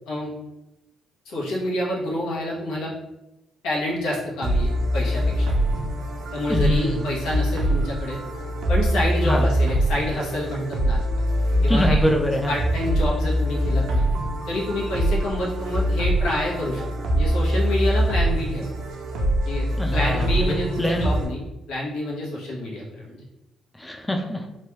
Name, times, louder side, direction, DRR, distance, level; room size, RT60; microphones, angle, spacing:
voice 1, 1.3-2.9 3.6-5.5 6.3-8.2 8.7-11.2 11.6-12.0 12.5-14.0 14.5-16.9 17.1-18.7 19.5-21.4 21.7-23.2, left 1 dB, 90° left, -4 dB, 0.9 m, -28 dB
sound 1, 4.4-21.3, right 1 dB, 80° right, 0.7 m, -23 dB
voice 2, 6.5-7.0 9.2-9.4 11.7-12.5 19.8-21.1 23.8-24.5, left 1 dB, 10° left, 3 dB, 0.4 m, -24 dB
3.0 x 2.3 x 3.0 m, 0.94 s
cardioid pair, 90°, 0 cm